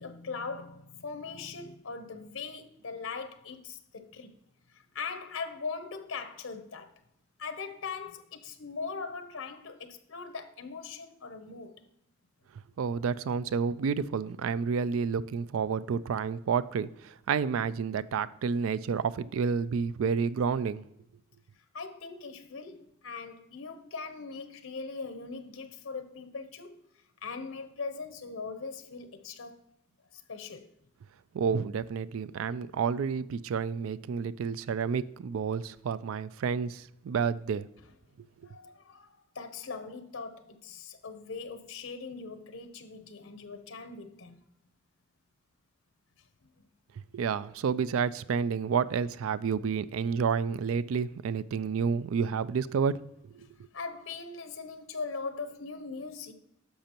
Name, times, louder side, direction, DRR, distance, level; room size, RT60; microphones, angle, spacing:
voice 1, 0.0-4.3 4.7-7.0 7.4-11.9 21.7-26.8 27.2-29.6 30.1-30.7 38.4-44.4 46.6-46.7 53.7-56.3, left 4 dB, 80° left, 0.8 m, -40 dB
voice 2, 12.8-20.8 31.3-37.7 47.1-52.9 53.3-53.5, right 6 dB, 85° right, 0.3 m, -30 dB
10.0 x 6.7 x 2.9 m
head